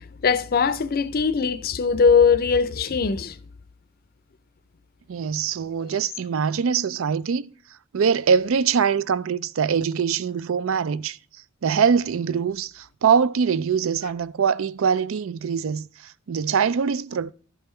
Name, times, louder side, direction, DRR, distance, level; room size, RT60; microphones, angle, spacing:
voice 1, 0.2-3.3, left 5 dB, 45° left, 0.5 m, -20 dB
voice 2, 5.1-7.5 7.9-11.2 11.6-17.3, right 6 dB, 70° right, 0.4 m, -23 dB
12.0 x 5.5 x 4.4 m
head